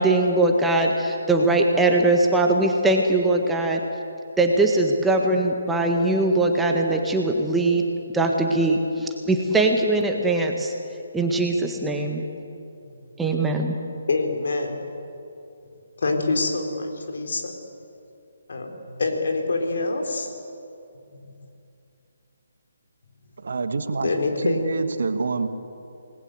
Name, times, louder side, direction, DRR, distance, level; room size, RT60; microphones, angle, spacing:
voice 1, 0.0-3.8 4.4-7.8 8.1-10.7 11.1-12.2 13.2-13.7, right 2 dB, 5° right, 2 dB, 1.7 m, -21 dB
voice 2, 14.1-14.8 16.0-17.5 18.5-20.3 24.0-24.8, left 3 dB, 55° left, 3 dB, 4.3 m, -25 dB
voice 3, 23.4-24.1 24.4-25.5, right 4 dB, 55° right, 9 dB, 1.7 m, -26 dB
28.0 x 20.0 x 8.0 m, 2.6 s
figure-of-eight pair, 140°, 0 cm